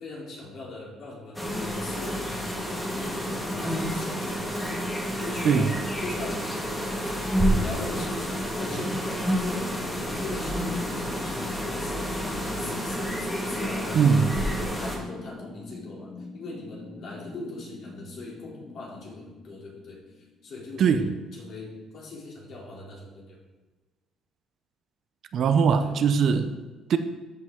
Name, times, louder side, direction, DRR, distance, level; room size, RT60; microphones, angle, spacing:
voice 1, 0.0-2.5 2.9-4.8 5.2-6.9 7.5-14.1 14.4-23.4 25.8-26.0, left 2 dB, 50° left, -3 dB, 2.9 m, -40 dB
sound 1, 1.3-15.0, equal, 10° left, 1.6 m, -29 dB
sound 2, 6.6-20.6, left 3 dB, 25° left, 1.6 m, -45 dB
voice 2, 13.9-14.3 20.8-21.1 25.3-26.5 26.9-27.0, right 6 dB, 50° right, 9 dB, 0.6 m, -21 dB
13.0 x 5.5 x 3.7 m, 1.2 s
cardioid pair, 140°, 0 cm